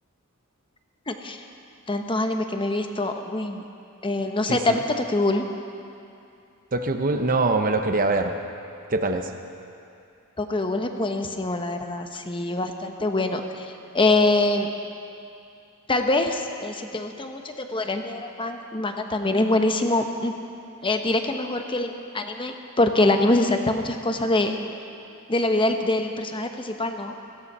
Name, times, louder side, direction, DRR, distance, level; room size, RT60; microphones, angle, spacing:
voice 1, 1.1-1.4 1.9-3.6 4.0-5.4 10.4-14.7 15.9-20.3 20.8-24.6 25.3-27.1, left 2 dB, 25° left, 5 dB, 0.9 m, -24 dB
voice 2, 4.5-4.8 6.7-8.4 8.9-9.3, right 2 dB, 40° right, 5 dB, 0.9 m, -23 dB
17.0 x 14.5 x 5.5 m, 2.6 s
head